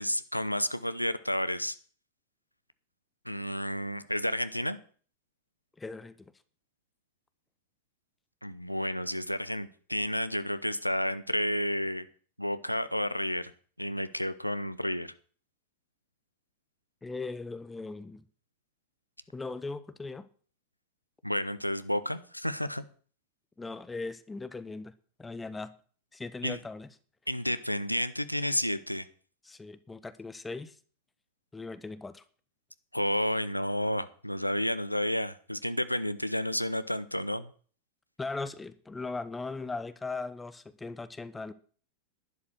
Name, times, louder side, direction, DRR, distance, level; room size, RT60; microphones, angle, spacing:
voice 1, 0.0-1.8 3.2-4.8 8.4-12.1 12.4-13.5 13.8-15.1 21.2-22.8 26.4-26.6 27.3-29.1 32.9-37.5, equal, 90° left, 13 dB, 0.8 m, -31 dB
voice 2, 5.8-6.3 17.0-18.2 19.3-20.3 23.6-24.9 25.2-25.7 26.1-26.9 29.4-30.8 31.5-32.2 38.2-41.5, left 3 dB, 10° left, 14 dB, 0.9 m, -39 dB
11.5 x 11.0 x 6.2 m, 0.44 s
figure-of-eight pair, 90°, 0 cm